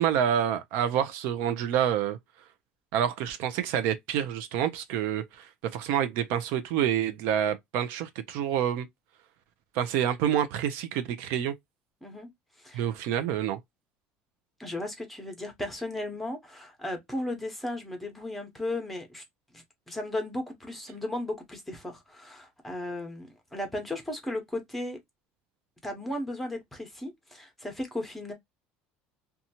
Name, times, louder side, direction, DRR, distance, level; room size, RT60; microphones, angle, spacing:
voice 1, 0.0-2.2 2.9-8.9 9.7-11.5 12.7-13.6, right 9 dB, 65° right, 0.5 m, -28 dB
voice 2, 12.6-12.9 14.6-19.2 19.5-25.0 25.8-28.3, left 1 dB, 5° left, 0.8 m, -35 dB
2.7 x 2.3 x 2.7 m
cardioid pair, 160°, 4 cm